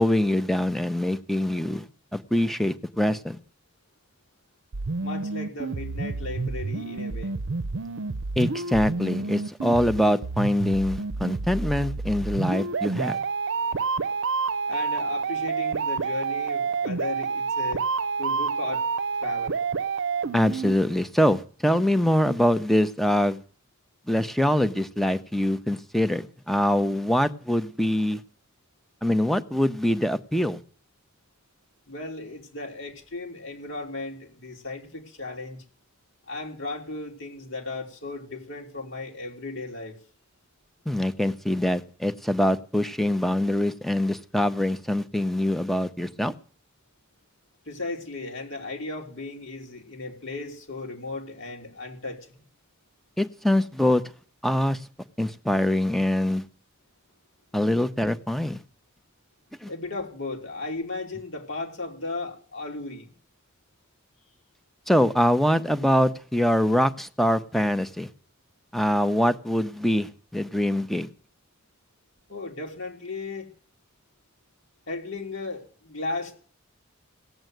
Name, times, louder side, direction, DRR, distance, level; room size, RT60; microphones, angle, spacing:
voice 1, 0.0-3.4 8.4-13.2 20.3-23.4 24.1-28.2 29.0-30.6 40.9-46.3 53.2-54.0 54.4-54.8 55.2-56.4 57.5-58.6 59.6-59.7 64.9-68.1 68.7-71.1, left 1 dB, ahead, 0.8 m, -24 dB
sound 1, 4.7-20.7, right 4 dB, 60° right, 0.7 m, -29 dB
voice 2, 5.0-7.3 14.7-17.8 18.2-18.9 19.2-19.6 31.9-35.6 36.3-40.0 47.7-52.4 59.7-63.1 72.3-73.5 74.9-76.3, left 3 dB, 65° left, 3.5 m, -35 dB
17.5 x 7.9 x 9.2 m
head